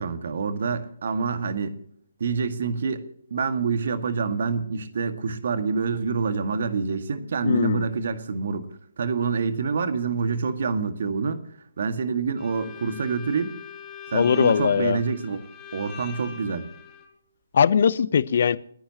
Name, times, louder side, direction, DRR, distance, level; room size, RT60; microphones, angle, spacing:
voice 1, 0.0-1.8 2.2-3.1 3.3-11.4 11.8-13.6 14.1-16.7, right 5 dB, 55° right, 1.9 m, -27 dB
voice 2, 7.4-7.9 14.1-15.0 17.5-18.6, left 7 dB, 50° left, 0.8 m, -20 dB
Bowed string instrument, 12.4-17.1, left 6 dB, 20° left, 4.8 m, -42 dB
29.5 x 10.5 x 3.0 m
figure-of-eight pair, 140°, 0 cm